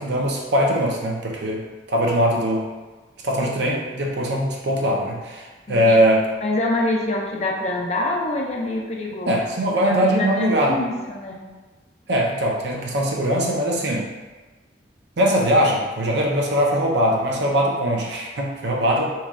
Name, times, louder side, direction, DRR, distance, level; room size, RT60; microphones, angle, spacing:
voice 1, 0.0-2.7 3.2-6.3 9.3-10.8 12.1-14.1 15.2-19.1, equal, 65° right, -1 dB, 0.6 m, -21 dB
voice 2, 5.7-6.0 6.4-9.4 9.7-11.4, left 2 dB, 35° left, -1 dB, 0.4 m, -26 dB
3.1 x 2.3 x 3.4 m, 1.2 s
head